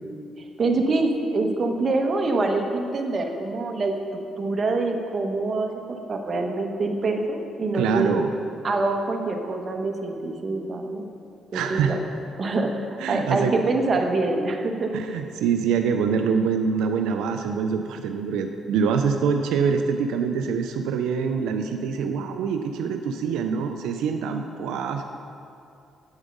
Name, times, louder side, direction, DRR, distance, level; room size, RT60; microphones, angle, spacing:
voice 1, 0.0-3.9 4.4-5.7 6.1-8.2 8.6-11.0 11.5-12.0 12.4-14.9, right 3 dB, 40° right, 3 dB, 1.0 m, -25 dB
voice 2, 7.7-8.3 11.5-12.0 13.0-13.6 14.9-25.0, right 6 dB, 90° right, 5 dB, 0.4 m, -25 dB
8.1 x 7.1 x 5.3 m, 2.6 s
cardioid pair, 90°, 0 cm